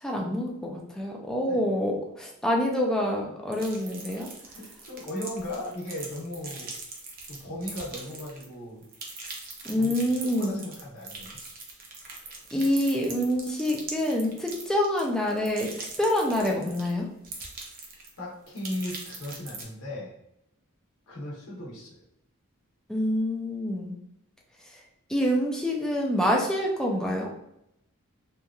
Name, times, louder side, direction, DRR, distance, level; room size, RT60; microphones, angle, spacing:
voice 1, 0.0-4.3 9.6-10.6 12.5-15.7 16.0-17.1 22.9-23.9 25.1-27.3, left 1 dB, 5° left, -1 dB, 0.3 m, -26 dB
sound 1, 3.5-8.5 8.8-16.9 17.2-18.2 18.5-19.6, right 3 dB, 40° right, 0.6 m, -41 dB
voice 2, 4.5-6.7 7.3-8.9 9.7-11.4 18.2-20.1 21.1-22.0, left 1 dB, 70° left, -5 dB, 0.9 m, -37 dB
2.9 x 2.4 x 2.3 m, 0.80 s
head